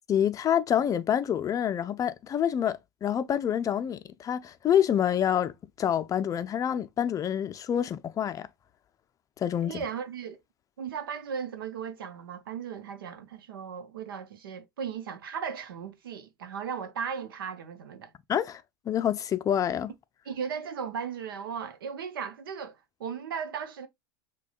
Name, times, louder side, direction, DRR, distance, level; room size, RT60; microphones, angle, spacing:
voice 1, 0.1-8.5 9.4-9.8 18.3-19.9, left 9 dB, 30° left, 0.4 m, -27 dB
voice 2, 9.6-10.4 10.8-18.1 20.3-23.9, right 7 dB, 85° right, 0.8 m, -36 dB
6.0 x 2.2 x 2.3 m
hypercardioid pair, 100°, 11 cm